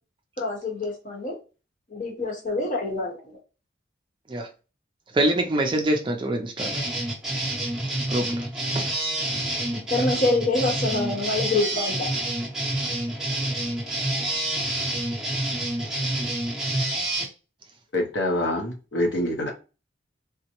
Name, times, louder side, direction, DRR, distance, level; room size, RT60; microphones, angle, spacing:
voice 1, 0.4-1.4 1.9-3.2 9.9-12.1, left 2 dB, 40° left, 1.0 m, -26 dB
voice 2, 5.1-6.8 8.1-8.3, right 1 dB, 25° right, 0.4 m, -24 dB
sound 1, 6.6-17.2, right 1 dB, 5° right, 0.7 m, -28 dB
voice 3, 17.9-19.5, left 1 dB, 70° left, 0.7 m, -25 dB
3.5 x 2.0 x 2.9 m
head